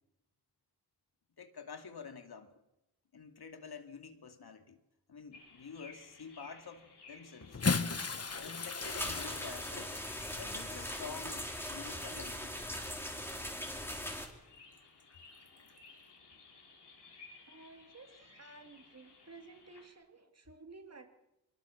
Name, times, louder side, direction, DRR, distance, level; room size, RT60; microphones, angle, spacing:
voice 1, 1.4-2.6 3.1-4.8 5.1-7.6 8.4-10.0 10.3-12.6, left 6 dB, 70° left, 2.6 m, -48 dB
sound 1, 5.3-19.9, left 4 dB, 85° left, 6.7 m, -57 dB
Bathtub (filling or washing) / Splash splatter, 7.4-13.1 14.0-14.2 15.6-15.7, left 4 dB, 40° left, 1.4 m, -38 dB
sound 2, 8.8-14.3, equal, 5° left, 4.2 m, -40 dB
voice 2, 17.5-21.1, right 3 dB, 40° right, 3.0 m, -54 dB
24.0 x 23.0 x 7.3 m
wide cardioid pair, 85°, 39 cm